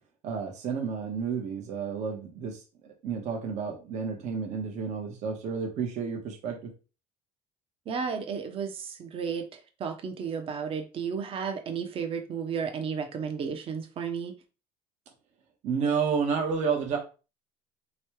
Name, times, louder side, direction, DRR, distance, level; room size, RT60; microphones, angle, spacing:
voice 1, 0.2-6.7 15.6-17.0, right 6 dB, 60° right, 2 dB, 1.0 m, -31 dB
voice 2, 7.9-14.3, right 6 dB, 45° right, 5 dB, 0.7 m, -33 dB
3.4 x 3.1 x 3.1 m, 0.33 s
supercardioid pair, 95°, 13 cm